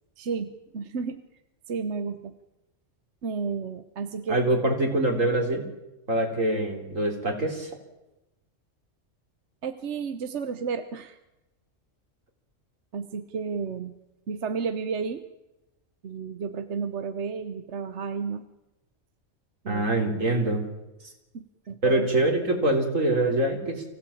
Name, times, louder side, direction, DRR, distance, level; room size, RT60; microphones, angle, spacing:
voice 1, 0.2-1.2 1.7-2.3 3.2-4.4 9.6-11.2 12.9-14.0 14.3-15.2 16.0-18.5 19.6-19.8 21.3-22.2, right 5 dB, 65° right, 9 dB, 1.3 m, -32 dB
voice 2, 4.3-5.7 6.1-7.7 19.7-20.6 21.8-23.8, right 1 dB, 85° right, 3 dB, 3.9 m, -24 dB
24.0 x 16.5 x 8.6 m, 0.98 s
omnidirectional pair, 1.3 m